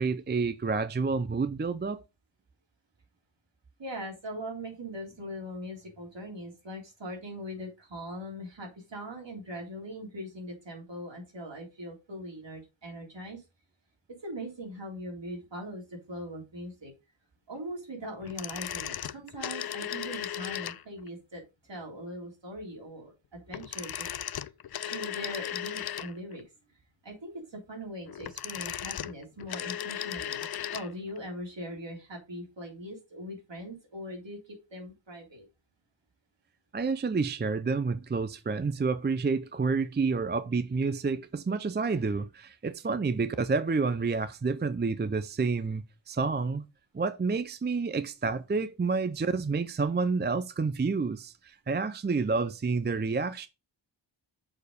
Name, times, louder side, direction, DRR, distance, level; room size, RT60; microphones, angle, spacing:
voice 1, 0.0-2.0 36.7-46.6 46.9-53.5, right 4 dB, 25° right, 0.5 m, -29 dB
voice 2, 3.8-13.4 14.1-16.9 17.5-24.5 24.9-26.4 27.0-30.5 30.7-35.5, equal, 70° right, 3.4 m, -41 dB
sound 1, 18.2-21.1 23.5-26.4 28.0-30.9 31.2-31.3, left 10 dB, 55° left, 0.5 m, -36 dB
6.6 x 4.6 x 5.1 m
wide cardioid pair, 85°, 46 cm